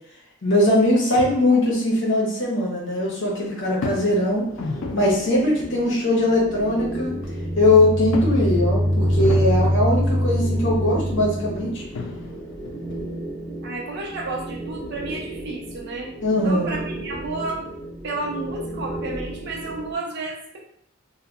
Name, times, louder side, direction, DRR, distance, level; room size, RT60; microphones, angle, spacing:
voice 1, 0.4-4.5 4.9-7.1 7.6-11.8 16.2-16.8, left 1 dB, 65° left, -3 dB, 0.8 m, -20 dB
sound 1, 1.1-1.9 3.7-5.6 6.8-6.9 7.2-7.3 8.1-10.4 11.3-11.4 11.8-13.3, left 3 dB, 80° left, 0.4 m, -33 dB
sound 2, 3.0-19.9, right 1 dB, 5° left, 0.5 m, -35 dB
sound 3, 7.0-11.7, equal, 25° left, 1.4 m, -23 dB
voice 2, 13.6-16.1 16.4-17.7 18.0-20.6, right 2 dB, 55° right, -2 dB, 0.6 m, -31 dB
2.7 x 2.1 x 2.3 m, 0.67 s
head